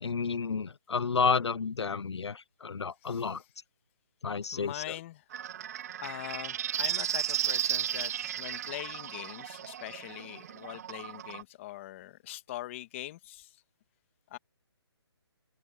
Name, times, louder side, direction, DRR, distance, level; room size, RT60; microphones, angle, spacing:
voice 1, 0.0-3.4 4.2-4.8, left 5 dB, 85° left, 0.7 m, -31 dB
voice 2, 3.0-3.5 4.5-5.2 6.0-13.6 14.3-14.4, left 15 dB, 30° left, 1.8 m, -42 dB
sound 1, 5.3-11.4, right 10 dB, 35° right, 0.9 m, -34 dB
open air
hypercardioid pair, 155°, 14 cm